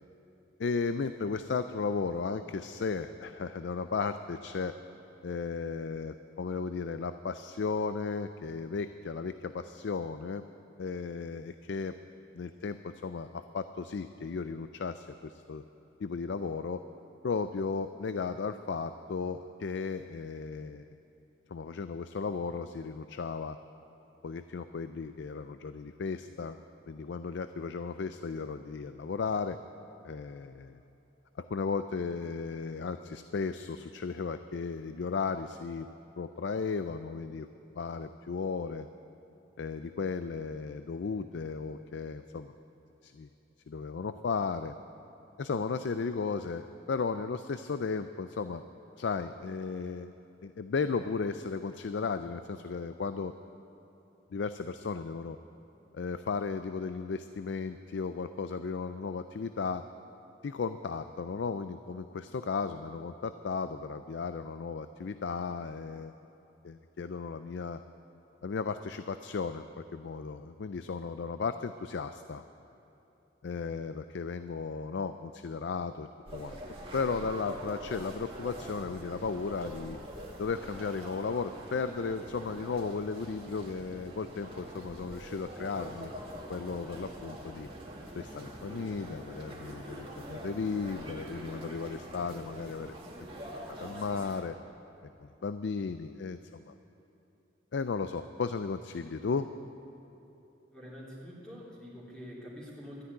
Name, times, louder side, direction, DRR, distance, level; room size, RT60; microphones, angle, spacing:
voice 1, 0.6-4.7 5.2-10.4 10.8-12.0 12.3-15.6 16.0-16.8 17.2-20.9 21.5-23.6 24.2-26.6 26.9-29.6 30.0-30.8 31.4-35.9 36.2-37.5 37.8-38.9 39.6-42.5 43.0-43.3 43.7-44.8 45.4-48.6 49.0-50.1 50.4-53.3 54.3-55.4 55.9-59.8 60.4-66.1 66.6-67.8 68.4-72.4 73.4-76.6 76.9-80.0 80.4-86.1 86.5-87.7 88.1-92.9 93.8-94.6 95.2-96.4 96.7-96.8 97.7-99.5, left 5 dB, 65° left, 10 dB, 0.4 m, -35 dB
sound 1, 76.3-94.4, right 1 dB, 30° right, 1.8 m, -44 dB
voice 2, 100.7-103.0, equal, 5° left, -6 dB, 3.0 m, -46 dB
13.0 x 9.7 x 9.5 m, 3.0 s
head